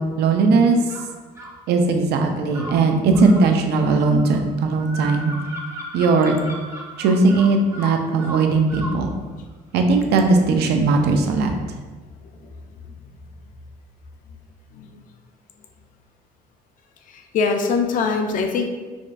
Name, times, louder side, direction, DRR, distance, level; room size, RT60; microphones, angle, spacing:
voice 1, 0.2-0.8 1.7-5.3 5.9-6.3 7.0-9.1 9.7-11.5, right 3 dB, 75° right, 4 dB, 0.5 m, -18 dB
sound 1, 0.9-1.6 2.5-9.0, equal, 15° right, 0.6 m, -36 dB
voice 2, 14.7-15.0 17.1-18.7, left 4 dB, 55° left, 5 dB, 0.5 m, -23 dB
4.8 x 2.2 x 2.5 m, 1.3 s
cardioid pair, 110°, 17 cm